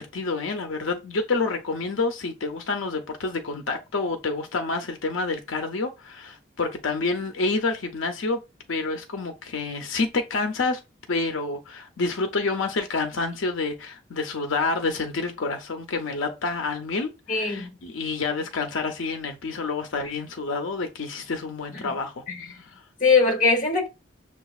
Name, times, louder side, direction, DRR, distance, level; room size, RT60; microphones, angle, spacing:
voice 1, 0.0-8.4 8.7-10.8 11.1-22.2 22.6-22.8, left 3 dB, 85° left, 0.6 m, -28 dB
voice 2, 17.3-17.7 21.7-21.9 23.0-23.9, left 4 dB, 40° left, 1.1 m, -21 dB
6.7 x 2.4 x 2.4 m
head